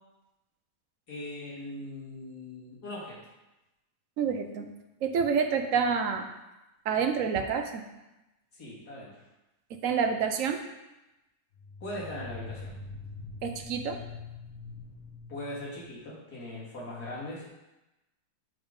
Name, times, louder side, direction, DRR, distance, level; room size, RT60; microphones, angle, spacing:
voice 1, 1.1-3.2 8.5-9.2 11.8-12.7 15.3-17.5, left 1 dB, 80° left, -7 dB, 2.5 m, -40 dB
voice 2, 4.2-4.7 5.0-6.3 6.9-7.8 9.7-10.6 13.4-14.0, right 6 dB, 65° right, 5 dB, 0.9 m, -28 dB
sound 1, 6.2-6.3 11.5-16.0, left 3 dB, 45° left, 1.8 m, -44 dB
7.8 x 3.7 x 5.2 m, 0.99 s
omnidirectional pair, 1.7 m